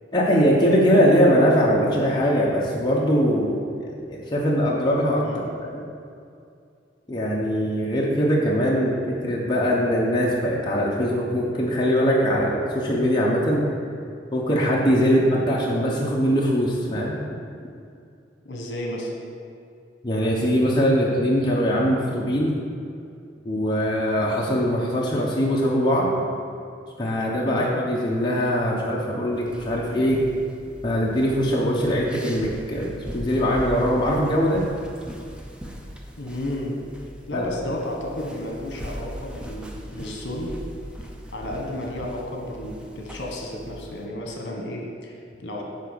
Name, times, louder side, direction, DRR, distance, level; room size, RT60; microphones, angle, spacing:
voice 1, 0.1-5.2 5.6-5.8 7.1-13.6 14.3-17.2 20.0-22.5 23.4-26.1 27.0-30.2 30.8-32.9 33.1-34.7 37.3-37.5, equal, 25° left, -4 dB, 0.9 m, -21 dB
voice 2, 18.4-19.1 27.4-27.7 36.2-36.8 37.3-40.5 41.3-45.6, left 1 dB, 65° left, 0 dB, 1.3 m, -32 dB
sound 1, 29.3-44.1, equal, 5° right, 0.5 m, -40 dB
10.0 x 3.5 x 6.7 m, 2.4 s
head